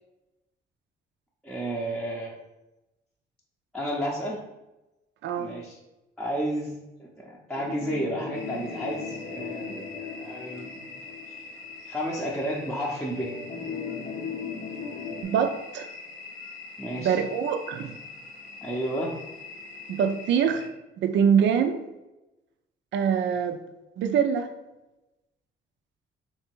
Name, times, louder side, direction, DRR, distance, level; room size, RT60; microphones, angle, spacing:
voice 1, 1.4-2.4 3.7-4.4 5.4-5.8 6.2-10.9 11.9-13.3 16.8-17.2 18.6-19.2, equal, 5° left, -4 dB, 0.7 m, -32 dB
sound 1, 7.5-11.9 12.3-12.4 13.1-15.2, left 5 dB, 40° left, 0.7 m, -37 dB
sound 2, 8.3-20.7, left 4 dB, 90° left, 0.7 m, -44 dB
voice 2, 15.2-15.9 17.0-17.9 19.9-20.7 21.0-21.8 22.9-23.6 24.0-24.5, right 7 dB, 65° right, 7 dB, 0.4 m, -24 dB
3.4 x 2.9 x 4.5 m, 1.0 s
cardioid pair, 90°, 20 cm